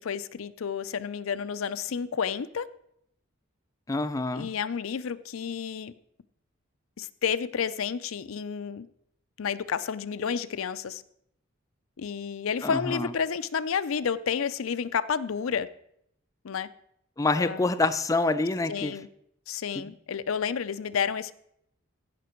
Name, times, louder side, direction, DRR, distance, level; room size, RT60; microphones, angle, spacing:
voice 1, 0.0-2.7 4.3-5.9 7.0-8.9 9.4-11.0 12.0-15.7 16.4-16.7 17.4-17.7 18.7-19.1 19.5-21.3, left 7 dB, 90° left, 0.5 m, -30 dB
voice 2, 3.9-4.5 12.6-13.1 17.2-19.0 19.8-19.9, left 3 dB, 15° left, 0.4 m, -27 dB
15.5 x 5.9 x 4.5 m
head